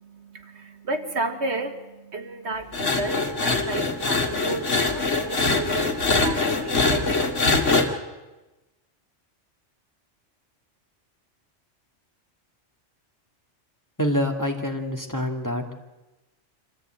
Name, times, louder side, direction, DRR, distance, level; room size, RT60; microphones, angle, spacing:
voice 1, 0.0-7.3, right 3 dB, 60° right, 6 dB, 1.8 m, -33 dB
sound 1, 2.7-7.9, left 3 dB, 80° left, 2.6 m, -23 dB
voice 2, 14.0-15.6, equal, 15° left, 2 dB, 2.2 m, -26 dB
25.5 x 14.5 x 9.0 m, 1.1 s
omnidirectional pair, 1.2 m